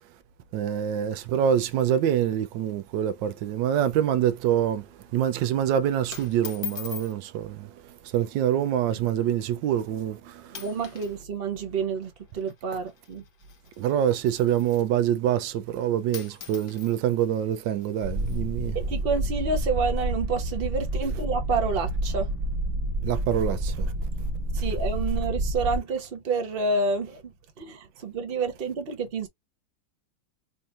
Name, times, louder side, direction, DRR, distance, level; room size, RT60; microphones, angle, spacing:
voice 1, 0.5-4.9 5.1-7.7 8.1-10.5 13.8-18.8 23.0-23.9, right 10 dB, 80° right, 1.3 m, -25 dB
sound 1, 1.1-2.4 2.7-2.8 3.1-3.3 3.7-4.0 4.3-4.6 5.4-5.6 6.1-7.2 8.1-8.4 9.1-9.2 9.9-10.1 10.5-11.2 11.4-15.0 15.8-15.9 16.1-18.4, left 12 dB, 90° left, 1.9 m, -43 dB
voice 2, 10.5-13.2 18.7-22.3 24.5-27.3 27.6-29.3, right 4 dB, 40° right, 0.9 m, -29 dB
sound 2, 18.0-25.8, right 1 dB, 20° right, 0.9 m, -29 dB
4.4 x 2.8 x 2.4 m
omnidirectional pair, 2.0 m